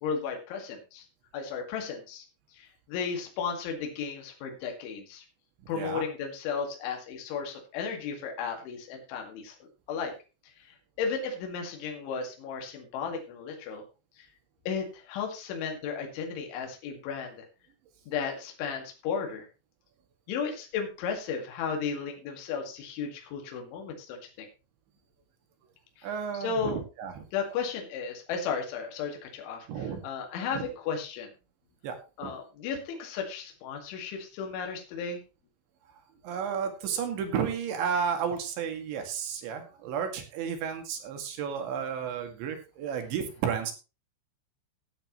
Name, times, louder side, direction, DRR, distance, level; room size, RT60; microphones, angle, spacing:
voice 1, 0.0-1.1 1.3-2.2 2.5-5.3 5.7-10.1 10.6-13.8 14.2-14.3 14.7-17.5 18.1-19.5 20.3-24.5 26.0-26.8 27.3-31.3 32.2-35.2, left 6 dB, 70° left, 2 dB, 4.4 m, -34 dB
voice 2, 26.0-27.2 29.7-30.0 30.6-30.7 31.8-32.0 32.2-32.3 36.2-43.7, right 7 dB, 70° right, 6 dB, 4.1 m, -32 dB
17.0 x 8.7 x 3.1 m, 0.30 s
omnidirectional pair, 5.8 m